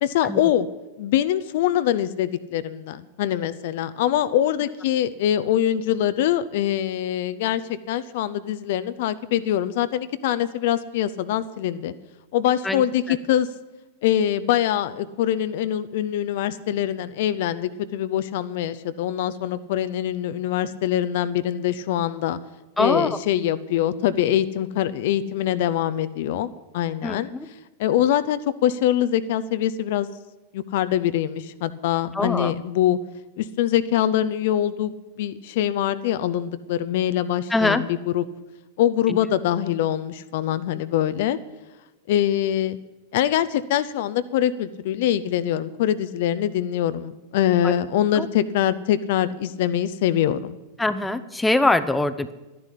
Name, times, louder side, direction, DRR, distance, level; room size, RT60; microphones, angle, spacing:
voice 1, 0.0-0.7 1.0-11.9 12.3-13.5 14.0-22.4 22.8-26.5 26.7-27.3 27.8-30.1 30.5-33.0 33.4-38.3 38.8-41.4 42.1-42.8 43.1-50.6, left 11 dB, 50° left, 14 dB, 0.6 m, -23 dB
voice 2, 12.6-13.2 22.8-23.2 27.0-27.5 32.1-32.5 37.5-37.8 39.1-39.2 47.6-47.7 48.1-48.3 50.8-52.3, left 2 dB, 10° left, 12 dB, 0.7 m, -23 dB
12.0 x 11.0 x 8.3 m, 1.1 s
figure-of-eight pair, 90°, 0 cm